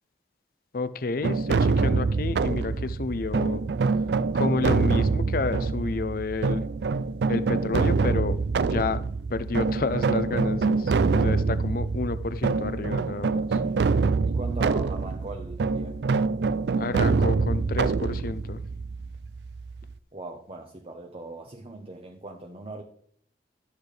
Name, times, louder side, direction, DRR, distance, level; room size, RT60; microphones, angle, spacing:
voice 1, 0.7-3.6 4.3-6.6 7.3-9.0 9.3-13.6 16.8-18.6, left 3 dB, 55° left, 0.5 m, -30 dB
sound 1, 1.2-19.9, right 4 dB, 70° right, 0.4 m, -25 dB
voice 2, 14.2-16.0 20.1-22.8, right 2 dB, 35° right, 0.8 m, -39 dB
12.5 x 8.2 x 3.3 m
head